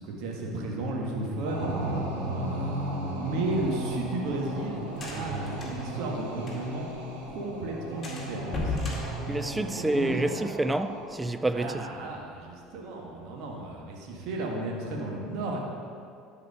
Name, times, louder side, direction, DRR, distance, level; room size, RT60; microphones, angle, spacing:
voice 1, 0.0-1.7 2.1-6.9 7.3-8.8 9.5-10.5 11.5-15.6, right 2 dB, 55° right, 1.6 m, -34 dB
sound 1, 1.5-11.4, right 1 dB, 75° right, 1.3 m, -35 dB
sound 2, 3.5-6.9 7.2-7.3 7.6-7.7 8.0-10.1, left 2 dB, 25° left, 2.1 m, -36 dB
voice 2, 9.3-11.8, right 2 dB, 15° right, 0.4 m, -28 dB
12.0 x 4.7 x 5.0 m
figure-of-eight pair, 65°, 0 cm